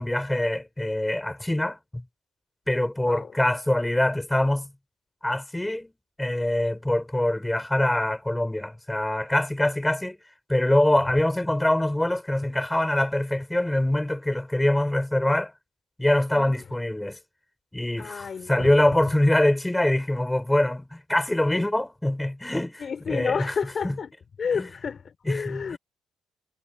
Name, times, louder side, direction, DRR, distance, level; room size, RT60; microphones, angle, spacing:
voice 1, 0.0-2.0 2.7-4.7 5.2-5.9 6.2-10.2 10.5-15.5 16.0-17.2 17.7-23.5 23.8-24.0 24.5-24.7 25.3-25.8, left 1 dB, 10° left, 4.0 m, -24 dB
voice 2, 18.0-18.7 22.8-24.1 24.4-25.8, left 6 dB, 45° left, 3.0 m, -30 dB
cardioid pair, 90°, 0 cm